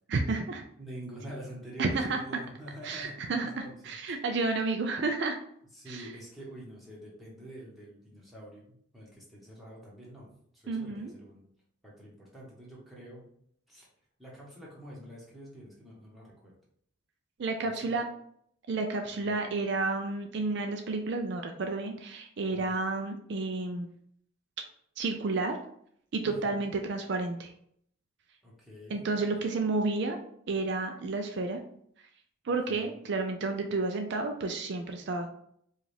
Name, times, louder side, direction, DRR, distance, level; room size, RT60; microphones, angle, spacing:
voice 1, 0.1-0.6 1.8-2.2 2.8-5.4 5.9-6.1 10.7-11.1 17.4-18.0 18.7-23.9 25.0-25.6 26.1-27.5 28.9-30.2 30.5-31.6 32.4-35.3, right 3 dB, 55° right, 5 dB, 0.4 m, -31 dB
voice 2, 0.8-4.2 5.7-10.3 10.5-11.4 11.8-13.2 13.7-13.9 14.2-16.5 17.6-18.0 22.5-22.8 26.2-26.7 28.4-29.1 32.7-32.9, right 1 dB, ahead, -6 dB, 1.2 m, -47 dB
4.8 x 2.5 x 3.3 m, 0.67 s
head